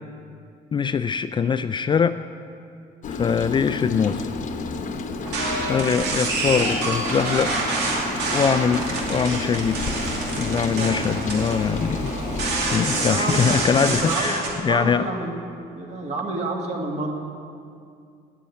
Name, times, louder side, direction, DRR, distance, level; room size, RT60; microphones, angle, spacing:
voice 1, 0.7-2.2 3.1-4.3 5.7-7.6 8.3-9.8 10.4-12.1 12.6-15.1, left 6 dB, 30° left, 11 dB, 0.3 m, -22 dB
Rain, 3.0-14.2, left 3 dB, 50° left, 0.9 m, -31 dB
sound 1, 5.3-14.5, right 3 dB, 90° right, 2.5 m, -27 dB
voice 2, 5.5-6.0 10.6-11.0 12.6-14.4 14.7-15.4 15.7-17.1, right 2 dB, 40° right, 1 dB, 2.2 m, -30 dB
9.9 x 8.3 x 9.2 m, 2.4 s
cardioid pair, 110°, 17 cm